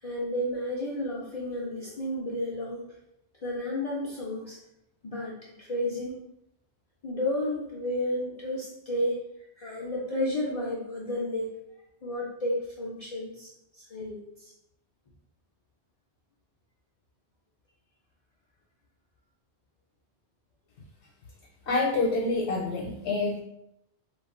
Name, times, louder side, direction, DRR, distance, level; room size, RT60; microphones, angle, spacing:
voice 1, 0.0-2.8 3.4-4.6 5.0-6.2 7.0-9.2 9.6-11.5 12.0-14.5, left 1 dB, 60° left, -4 dB, 0.4 m, -32 dB
voice 2, 21.7-23.4, left 3 dB, 80° left, -2 dB, 0.9 m, -27 dB
2.2 x 2.2 x 3.5 m, 0.83 s
omnidirectional pair, 1.1 m